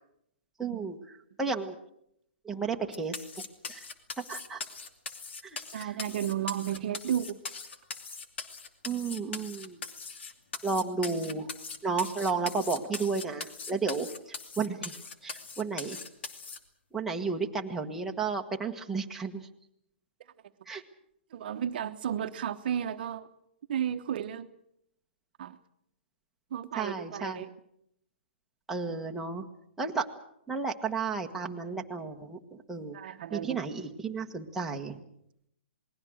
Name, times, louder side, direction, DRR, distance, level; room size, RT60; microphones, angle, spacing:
voice 1, 0.6-1.0 1.4-1.7 2.4-3.4 3.7-3.8 4.3-4.6 5.4-5.9 8.8-9.8 10.6-11.5 11.8-14.9 15.2-16.0 16.9-19.5 20.7-20.8 26.7-27.4 28.7-29.5 29.8-30.1 30.5-35.0, right 4 dB, 5° right, 0 dB, 1.4 m, -33 dB
sound 1, 2.9-16.6, left 4 dB, 70° left, 2.6 m, -41 dB
voice 2, 5.7-7.4 21.3-23.3 23.7-24.5 25.4-25.6 26.5-27.5 32.9-33.7, right 9 dB, 50° right, 9 dB, 1.0 m, -33 dB
28.0 x 19.5 x 6.4 m, 0.75 s
hypercardioid pair, 150°, 6 cm